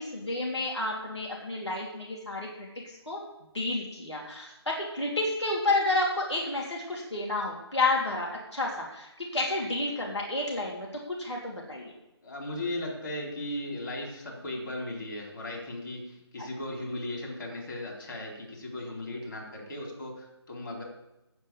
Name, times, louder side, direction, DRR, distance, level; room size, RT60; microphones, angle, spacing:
voice 1, 0.0-2.7 3.1-3.2 3.5-11.9, left 2 dB, 75° left, -2 dB, 3.2 m, -30 dB
voice 2, 12.2-20.8, left 1 dB, 50° left, -1 dB, 4.0 m, -37 dB
9.5 x 7.7 x 8.5 m, 0.92 s
figure-of-eight pair, 150°, 14 cm